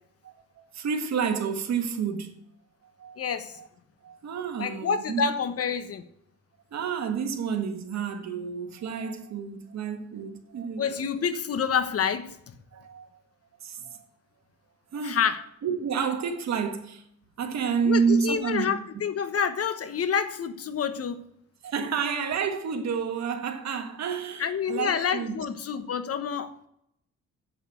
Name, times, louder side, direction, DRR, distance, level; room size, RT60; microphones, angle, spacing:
voice 1, 0.2-2.3 3.0-3.2 3.6-3.7 4.0-5.2 6.7-11.0 12.7-13.1 13.6-14.0 14.9-15.2 15.6-17.0 17.4-18.7 21.6-25.4, right 6 dB, 60° right, 1.6 m, -29 dB
voice 2, 3.2-3.6 4.6-6.0 10.8-12.4 15.0-15.4 17.8-21.2 24.4-26.5, left 7 dB, 50° left, 1.3 m, -28 dB
8.0 x 7.8 x 7.9 m
cardioid pair, 90°, 30 cm